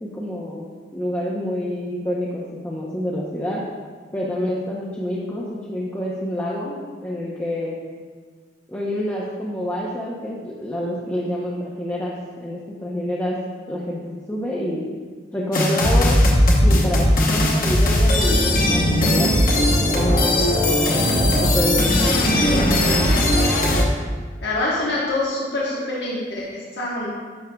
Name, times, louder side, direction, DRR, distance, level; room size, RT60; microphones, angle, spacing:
voice 1, 0.0-3.6 4.1-7.8 8.7-12.1 12.4-13.4 13.7-14.8 15.3-16.2 16.6-22.7, equal, 10° left, -5 dB, 0.7 m, -28 dB
sound 1, 15.5-23.8, left 1 dB, 50° left, 1.0 m, -18 dB
voice 2, 24.4-27.3, left 2 dB, 80° left, -6 dB, 1.2 m, -25 dB
10.5 x 6.3 x 2.3 m, 1.5 s
head